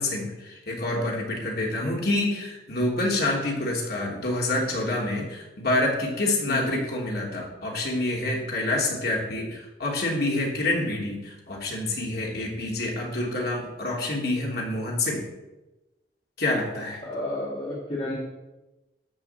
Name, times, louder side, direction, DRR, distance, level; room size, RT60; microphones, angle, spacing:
voice 1, 0.0-15.3 16.4-17.0, left 2 dB, 60° left, -2 dB, 3.1 m, -27 dB
voice 2, 17.0-18.1, left 1 dB, 35° left, -7 dB, 2.8 m, -32 dB
13.0 x 5.6 x 8.0 m, 1.1 s
head